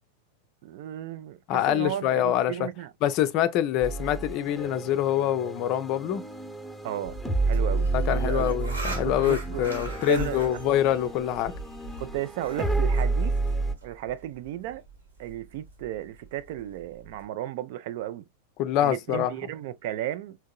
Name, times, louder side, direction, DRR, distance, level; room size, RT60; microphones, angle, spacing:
voice 1, 0.6-2.9 6.8-7.2 7.4-8.6 9.0-10.6 12.0-13.4 13.8-14.8 15.2-18.2 18.8-20.4, right 12 dB, 50° right, 0.4 m, -34 dB
voice 2, 1.5-2.7 3.0-6.2 7.9-11.5 18.6-19.3, left 12 dB, 40° left, 0.5 m, -25 dB
sound 1, 3.8-13.7, right 3 dB, ahead, 0.9 m, -30 dB
sound 2, 7.0-17.2, right 3 dB, 75° right, 1.7 m, -41 dB
4.5 x 3.6 x 2.2 m
figure-of-eight pair, 90°, 0 cm